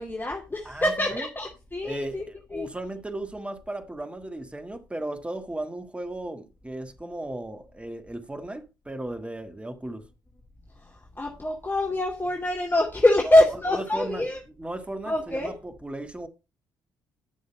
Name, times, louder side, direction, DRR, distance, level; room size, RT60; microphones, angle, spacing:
voice 1, 0.0-2.3 2.5-2.7 10.8-14.4 15.1-15.6, left 1 dB, 20° left, 2.6 m, -24 dB
voice 2, 0.7-1.3 1.8-2.2 2.5-10.1 13.3-13.4 13.7-14.3 14.6-16.3, right 1 dB, 10° right, 1.6 m, -36 dB
11.0 x 6.3 x 5.3 m
figure-of-eight pair, 45°, 11 cm